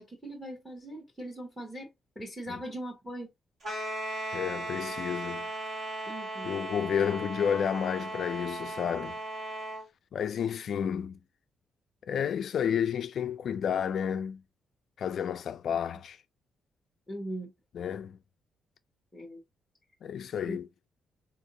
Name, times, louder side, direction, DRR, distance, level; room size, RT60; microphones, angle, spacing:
voice 1, 0.0-3.3 6.1-6.5 17.1-17.5 19.1-19.4 20.4-20.6, right 1 dB, ahead, 1.1 m, -40 dB
sound 1, 3.6-9.9, right 2 dB, 40° right, 1.8 m, -37 dB
voice 2, 4.3-5.5 6.4-9.2 10.1-11.1 12.1-14.4 15.0-16.2 17.7-18.2 20.0-20.7, left 8 dB, 50° left, 0.3 m, -31 dB
3.6 x 2.7 x 2.7 m
cardioid pair, 165°, 0 cm